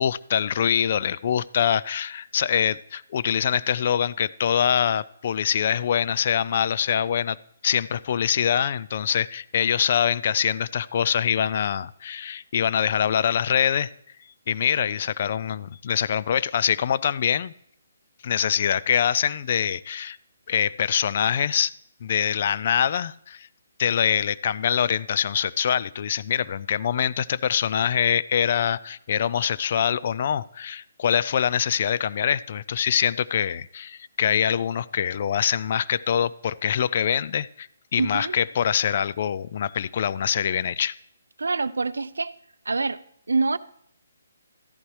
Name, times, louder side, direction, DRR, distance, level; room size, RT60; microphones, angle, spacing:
voice 1, 0.0-7.4 7.6-13.9 14.5-17.5 18.2-20.2 20.5-21.7 22.0-23.5 23.8-40.9, left 8 dB, 50° left, 18 dB, 0.3 m, -24 dB
voice 2, 38.0-38.4 41.4-42.4 42.7-43.6, right 3 dB, 85° right, 16 dB, 0.4 m, -26 dB
13.5 x 11.0 x 3.2 m, 0.70 s
hypercardioid pair, 145°, 0 cm